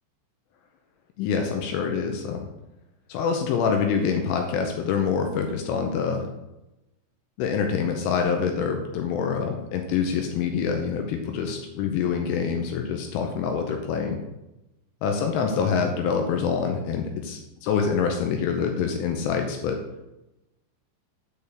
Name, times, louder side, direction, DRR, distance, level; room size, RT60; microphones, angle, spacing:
voice 1, 1.2-2.5 3.1-6.3 7.4-14.2 15.0-19.8, left 6 dB, 85° left, 3 dB, 3.0 m, -26 dB
8.2 x 6.8 x 3.4 m, 0.95 s
omnidirectional pair, 5.9 m